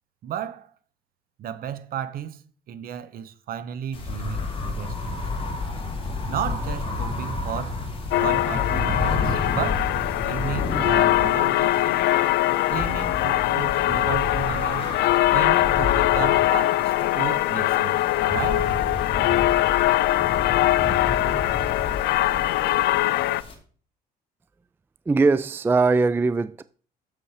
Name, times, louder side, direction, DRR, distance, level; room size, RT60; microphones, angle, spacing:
voice 1, 0.2-0.7 1.4-2.4 2.7-5.6 6.3-7.9 8.1-10.0 10.2-12.0 12.7-14.9 15.3-18.7, right 9 dB, 60° right, 1.0 m, -33 dB
sound 1, 3.9-23.5, left 3 dB, 30° left, 2.5 m, -31 dB
sound 2, 8.1-23.4, left 15 dB, 75° left, 0.4 m, -22 dB
voice 2, 25.1-26.6, right 3 dB, 15° right, 0.3 m, -20 dB
7.7 x 7.1 x 4.8 m
cardioid pair, 110°, 17 cm